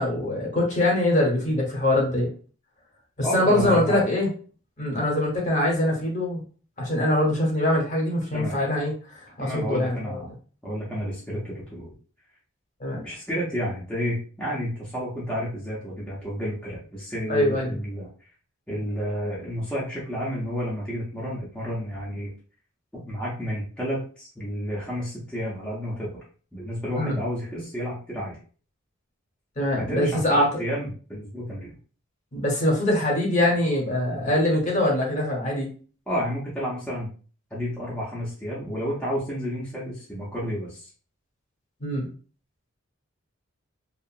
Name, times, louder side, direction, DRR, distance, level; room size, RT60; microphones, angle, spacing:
voice 1, 0.0-2.3 3.2-4.3 4.8-6.4 6.8-10.2 12.8-13.0 17.3-17.8 27.0-27.2 29.6-30.5 32.3-35.7 41.8-42.1, left 1 dB, 35° left, -1 dB, 0.9 m, -23 dB
voice 2, 3.2-4.0 8.3-8.6 9.4-10.3 10.6-11.9 13.0-18.1 18.7-22.3 23.1-26.2 26.5-28.4 29.8-31.8 36.1-37.1 37.5-40.9, equal, 5° left, -7 dB, 0.6 m, -31 dB
2.7 x 2.4 x 2.4 m, 0.39 s
head